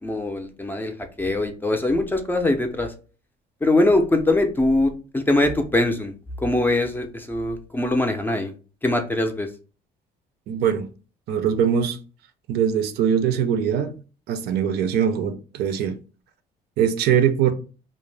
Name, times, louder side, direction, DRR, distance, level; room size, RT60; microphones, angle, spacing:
voice 1, 0.0-2.9 3.6-6.1 6.4-8.5 8.8-9.5, left 2 dB, 10° left, 0.4 m, -22 dB
voice 2, 10.5-10.9 11.3-12.0 12.5-14.0 14.3-16.0 16.8-17.5, right 8 dB, 75° right, 0.5 m, -22 dB
2.5 x 2.0 x 3.2 m
cardioid pair, 110°, 17 cm